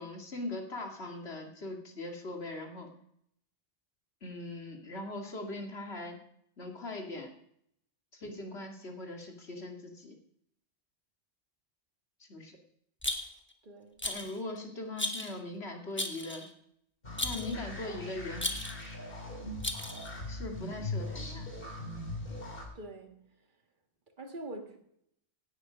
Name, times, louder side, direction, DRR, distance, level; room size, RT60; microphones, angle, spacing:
voice 1, 0.0-2.9 4.2-6.1 6.6-7.3 8.1-10.2 12.2-12.6 14.0-16.5 17.2-18.5 20.3-21.5, left 2 dB, 70° left, 2 dB, 2.7 m, -40 dB
Rattle, 13.0-13.5 14.0-14.4 15.0-15.4 16.0-16.5 17.2-17.6 18.4-18.9 19.6-20.2, left 1 dB, 10° left, 1.3 m, -35 dB
voice 2, 13.6-14.0 22.6-23.4 24.2-24.8, right 1 dB, 50° right, 4 dB, 1.9 m, -45 dB
sound 1, 17.0-22.6, left 2 dB, 55° left, 3.1 m, -40 dB
17.0 x 9.2 x 5.2 m, 0.71 s
omnidirectional pair, 1.1 m